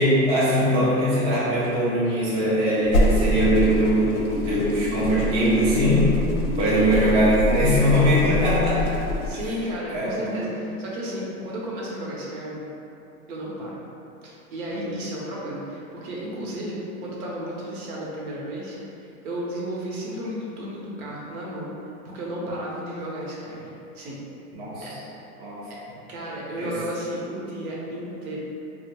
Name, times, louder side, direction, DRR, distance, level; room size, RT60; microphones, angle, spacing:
voice 1, 0.0-6.1 6.6-9.0 9.9-10.6 14.7-15.0 24.5-25.0 25.4-25.7 26.6-26.8, equal, 15° right, -8 dB, 0.4 m, -21 dB
sound 1, 2.8-9.3, left 1 dB, 45° left, 0.6 m, -25 dB
voice 2, 9.2-12.7 13.3-13.7 14.2-21.7 22.1-23.7 23.9-24.2 24.8-24.9 25.7-25.8 26.1-28.4, right 1 dB, 70° right, -4 dB, 1.0 m, -33 dB
4.1 x 2.1 x 2.9 m, 2.8 s
hypercardioid pair, 120°, 45 cm